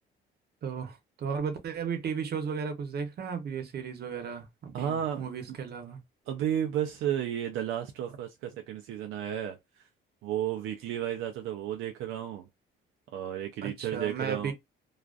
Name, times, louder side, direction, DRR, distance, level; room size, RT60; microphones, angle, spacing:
voice 1, 0.6-6.0 13.6-14.5, right 6 dB, 55° right, 0.8 m, -35 dB
voice 2, 4.7-5.2 6.3-9.6 10.2-12.5 13.1-14.5, right 10 dB, 85° right, 0.5 m, -32 dB
2.4 x 2.4 x 2.4 m
cardioid pair, 90°, 20 cm